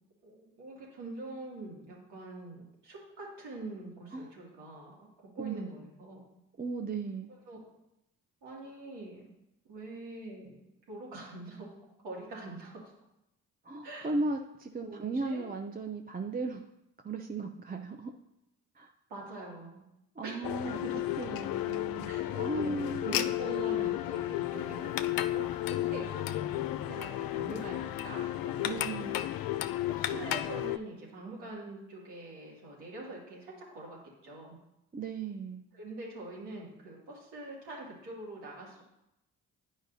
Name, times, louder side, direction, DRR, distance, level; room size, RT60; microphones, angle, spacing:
voice 1, 0.2-5.1 5.3-6.2 7.5-7.6 8.4-9.2 9.7-10.6 10.9-11.7 12.0-12.8 13.8-14.1 14.8-15.4 19.1-19.8 20.2-20.3 20.7-21.0 22.1-28.9 29.9-34.6 35.7-38.8, right 2 dB, 75° right, -4 dB, 2.5 m, -44 dB
voice 2, 5.4-5.7 6.6-7.3 13.6-16.6 17.0-18.1 18.8-18.9 20.2-20.8 21.2-22.1 22.4-23.2 28.6-29.2 34.9-35.6, right 3 dB, 20° right, 4 dB, 0.6 m, -36 dB
sound 1, 20.4-30.8, left 14 dB, 55° left, 0.5 m, -33 dB
10.5 x 5.1 x 2.7 m, 0.85 s
hypercardioid pair, 45°, 43 cm